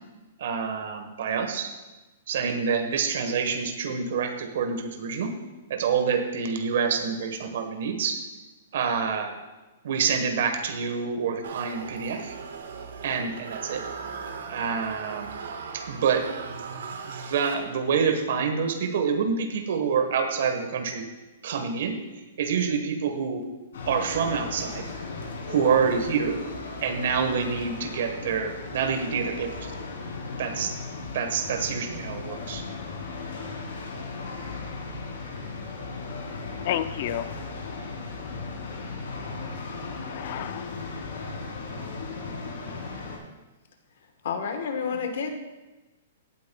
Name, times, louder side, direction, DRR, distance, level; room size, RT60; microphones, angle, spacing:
voice 1, 0.4-1.7 2.3-5.3 5.7-8.2 8.7-9.3 9.8-12.3 13.0-13.8 14.5-15.3 15.7-21.1 21.4-22.0 22.4-23.4 23.9-24.9 25.5-26.4 26.8-29.8 30.4-30.7 31.1-32.6, right 6 dB, 60° right, 5 dB, 1.1 m, -27 dB
sound 1, 11.4-18.1, right 5 dB, 85° right, 1.3 m, -38 dB
sound 2, 23.7-43.2, left 4 dB, 85° left, 3.0 m, -36 dB
voice 2, 36.0-36.4 36.6-37.5 39.4-41.2, left 11 dB, 40° left, 13 dB, 0.4 m, -34 dB
voice 3, 44.2-45.3, left 6 dB, 65° left, 6 dB, 1.1 m, -29 dB
16.5 x 8.8 x 2.2 m, 1.1 s
hypercardioid pair, 170°, 0 cm